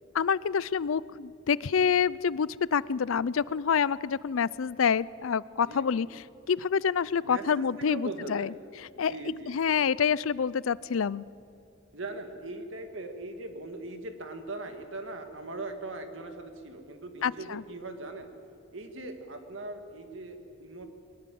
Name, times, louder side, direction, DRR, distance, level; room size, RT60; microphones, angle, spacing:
voice 1, 0.1-6.1 6.5-9.1 9.5-11.2 17.2-17.6, left 6 dB, 75° left, 21 dB, 0.5 m, -27 dB
voice 2, 5.6-6.0 7.2-8.5 9.0-9.9 11.9-18.3 18.7-20.9, right 2 dB, 65° right, 6 dB, 2.1 m, -40 dB
22.0 x 19.5 x 7.8 m, 2.6 s
head